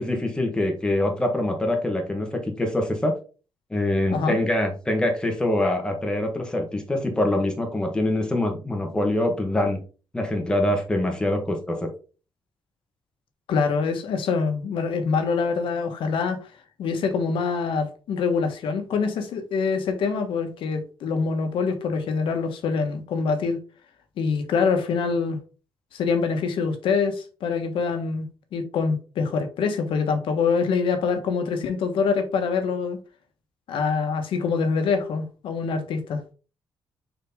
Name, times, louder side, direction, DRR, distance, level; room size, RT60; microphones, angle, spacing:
voice 1, 0.0-3.1 3.7-9.8 10.1-11.9, left 1 dB, 10° left, 1.4 m, -24 dB
voice 2, 13.5-16.4 16.8-23.6 24.2-25.4 25.9-28.3 28.5-33.0 33.7-36.2, left 5 dB, 80° left, 1.3 m, -25 dB
6.3 x 4.3 x 3.7 m
cardioid pair, 165°, 9 cm